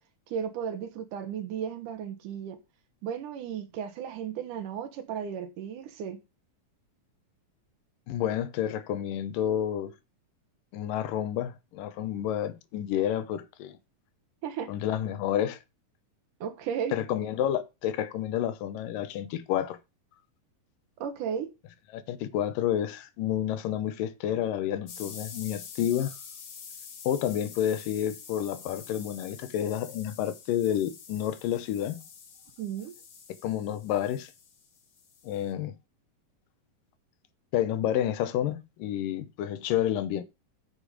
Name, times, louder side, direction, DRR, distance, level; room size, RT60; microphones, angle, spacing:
voice 1, 0.3-2.6 3.0-6.2 14.4-14.7 16.4-17.0 21.0-21.5 32.6-32.9, right 8 dB, 70° right, 2.6 m, -34 dB
voice 2, 8.1-9.9 10.7-13.8 14.7-15.6 16.9-19.8 21.9-26.1 27.0-32.0 33.4-34.3 35.2-35.7 37.5-40.2, left 11 dB, 80° left, 2.4 m, -30 dB
sound 1, 24.9-35.5, left 6 dB, 60° left, 3.0 m, -47 dB
8.9 x 6.8 x 5.0 m
omnidirectional pair, 4.0 m